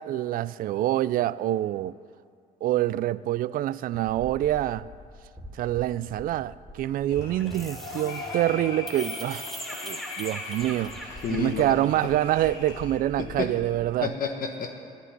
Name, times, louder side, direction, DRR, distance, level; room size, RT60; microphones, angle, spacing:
voice 1, 0.0-1.9 2.6-4.9 5.6-9.5 9.8-10.9 11.3-14.1, right 13 dB, 60° right, 0.4 m, -26 dB
sound 1, 3.9-14.0, equal, ahead, 2.3 m, -41 dB
sound 2, 7.1-13.0, left 3 dB, 85° left, 2.4 m, -40 dB
voice 2, 11.2-11.8 13.2-13.5 14.0-14.7, left 6 dB, 55° left, 1.3 m, -30 dB
10.5 x 8.2 x 9.7 m
cardioid pair, 110°, 17 cm